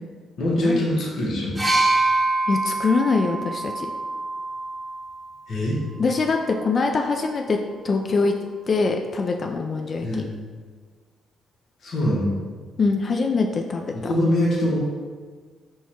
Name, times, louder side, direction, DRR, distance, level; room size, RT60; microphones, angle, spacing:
voice 1, 0.4-1.6 5.5-5.8 10.0-10.3 11.8-12.3 13.9-14.8, left 1 dB, 60° left, -6 dB, 1.0 m, -23 dB
sound 1, 1.6-5.4 6.4-6.6, right 2 dB, 15° right, 0.7 m, -25 dB
voice 2, 2.5-3.9 6.0-7.6 7.8-8.3 8.7-10.3 12.8-14.1, left 4 dB, 45° left, 3 dB, 0.3 m, -23 dB
4.5 x 2.2 x 4.3 m, 1.5 s
cardioid pair, 90°, 0 cm